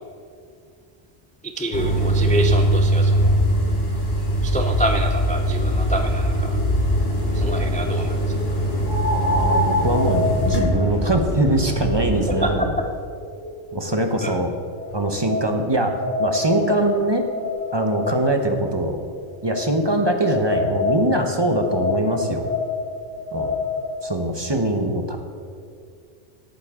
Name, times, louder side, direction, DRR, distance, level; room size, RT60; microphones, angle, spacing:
voice 1, 1.6-3.4 4.4-6.5 7.3-8.1 12.4-12.5 14.2-14.3, equal, 10° left, 4 dB, 0.4 m, -27 dB
sound 1, 1.7-12.5, right 1 dB, 55° left, 3.0 m, -21 dB
sound 2, 8.8-14.0 14.8-18.5 19.5-24.1, left 2 dB, 75° left, 2.4 m, -27 dB
voice 2, 9.1-12.7 13.7-14.5 14.9-15.9 16.2-17.2 17.7-19.0 19.4-22.5 23.3-23.5 24.0-25.2, right 1 dB, 25° right, 4 dB, 0.8 m, -22 dB
17.5 x 9.3 x 3.7 m, 2.3 s
omnidirectional pair, 1.2 m